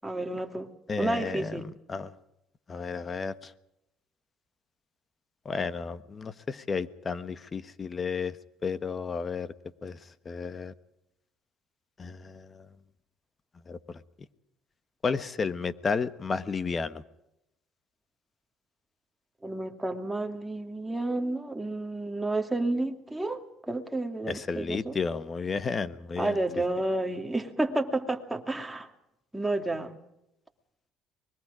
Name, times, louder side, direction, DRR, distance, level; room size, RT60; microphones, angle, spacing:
voice 1, 0.0-0.7 1.0-1.7 19.4-24.9 26.2-28.9 29.3-30.0, right 2 dB, 10° right, 4 dB, 2.5 m, -31 dB
voice 2, 0.9-2.1 2.7-3.5 5.4-8.4 8.6-9.5 9.8-10.0 10.2-10.7 12.0-12.7 13.7-14.0 15.0-17.0 24.3-26.4, left 5 dB, 30° left, 14 dB, 1.3 m, -32 dB
24.5 x 21.5 x 5.1 m, 0.87 s
supercardioid pair, 90°, 0 cm